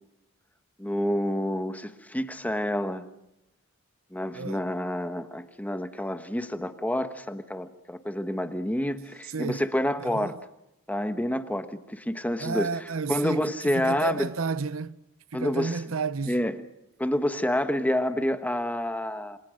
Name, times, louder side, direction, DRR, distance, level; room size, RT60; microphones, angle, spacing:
voice 1, 0.8-3.0 4.1-10.3 10.9-12.7 13.1-14.3 15.3-15.8 16.3-16.5 17.0-19.4, left 1 dB, 5° left, 1.3 m, -28 dB
voice 2, 9.2-9.7 10.0-10.4 12.4-15.0 15.3-16.4, right 4 dB, 80° right, 0.8 m, -31 dB
28.0 x 24.5 x 6.5 m
head